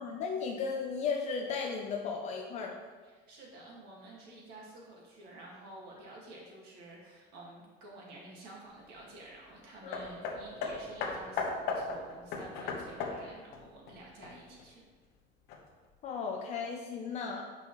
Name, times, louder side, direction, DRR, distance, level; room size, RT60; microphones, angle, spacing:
voice 1, 0.0-2.8 9.8-10.0 16.0-17.4, left 5 dB, 35° left, 1 dB, 0.6 m, -35 dB
voice 2, 3.0-14.8, right 1 dB, 55° right, -3 dB, 1.9 m, -50 dB
Hammer, 9.9-14.7 15.5-15.6, left 4 dB, 55° left, 1.1 m, -37 dB
8.5 x 5.4 x 3.1 m, 1.4 s
cardioid pair, 175°, 20 cm